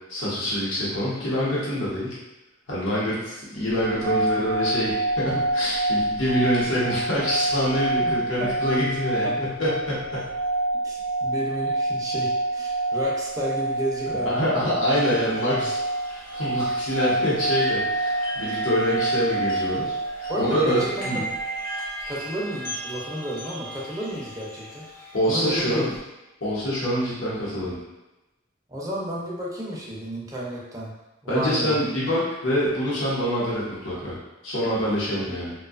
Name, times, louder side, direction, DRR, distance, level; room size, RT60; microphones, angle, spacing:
voice 1, 0.1-2.2 2.7-10.3 14.1-15.8 16.1-21.2 25.1-25.9 26.4-27.8 31.3-34.2 34.4-35.5, equal, 75° left, -8 dB, 0.9 m, -25 dB
sound 1, 3.7-20.9, right 2 dB, 90° right, 0.3 m, -27 dB
voice 2, 8.0-8.5 9.2-9.4 10.8-14.4 14.9-15.7 20.3-21.3 22.1-25.8 28.7-30.9 31.2-31.8 35.1-35.2, right 1 dB, 20° right, -4 dB, 0.5 m, -32 dB
sound 2, 14.9-26.0, equal, 45° left, 0.8 m, -37 dB
2.5 x 2.2 x 2.4 m, 1.0 s
head